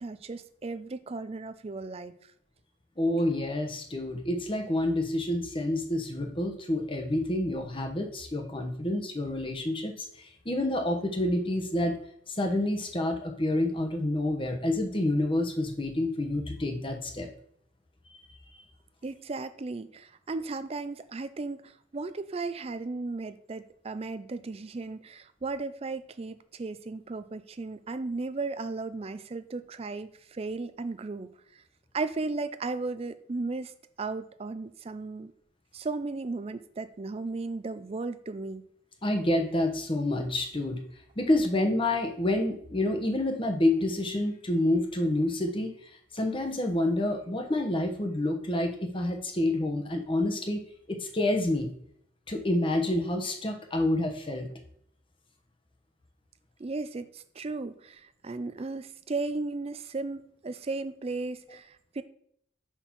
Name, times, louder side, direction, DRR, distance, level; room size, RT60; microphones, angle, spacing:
voice 1, 0.0-2.1 19.0-31.3 31.9-33.7 34.0-35.3 35.7-38.6 56.6-62.0, right 3 dB, 30° right, 12 dB, 0.4 m, -35 dB
voice 2, 3.0-12.0 12.3-17.3 39.0-40.8 41.2-45.7 46.1-50.6 50.9-51.7 52.3-54.5, left 1 dB, 25° left, 4 dB, 0.9 m, -28 dB
5.4 x 4.4 x 5.8 m, 0.66 s
head